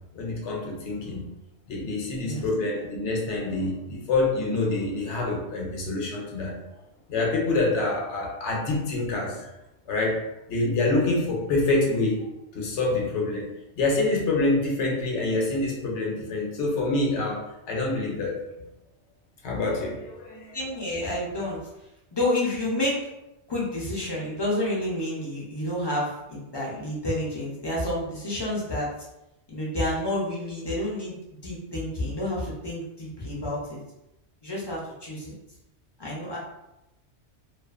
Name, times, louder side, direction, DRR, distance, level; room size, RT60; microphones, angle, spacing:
voice 1, 0.1-1.3 1.7-6.6 7.1-9.5 9.9-10.2 10.5-12.3 12.5-13.5 13.8-18.4 19.4-20.6, left 2 dB, 75° left, -2 dB, 1.0 m, -26 dB
voice 2, 20.5-21.6 22.1-23.0 23.5-28.9 29.5-31.1 31.4-33.8 34.4-35.3 36.0-36.4, left 1 dB, 35° left, -5 dB, 0.4 m, -29 dB
2.4 x 2.4 x 2.4 m, 0.90 s
omnidirectional pair, 1.2 m